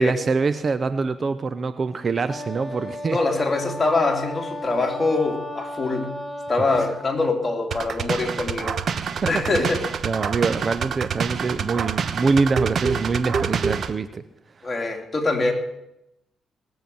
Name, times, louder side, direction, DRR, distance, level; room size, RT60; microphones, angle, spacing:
voice 1, 0.0-3.2 6.6-6.9 9.3-9.7 10.0-14.2, right 4 dB, 40° right, 12 dB, 0.7 m, -24 dB
Wind instrument woodwind instrument, 2.3-7.2, left 1 dB, ahead, 2.0 m, -34 dB
voice 2, 3.1-6.2 6.5-8.8 9.2-9.8 14.6-15.5, left 3 dB, 25° left, 2 dB, 3.1 m, -24 dB
sound 1, 7.7-13.9, right 6 dB, 55° right, 1.0 m, -27 dB
19.0 x 7.9 x 7.0 m, 0.84 s
cardioid pair, 90°, 0 cm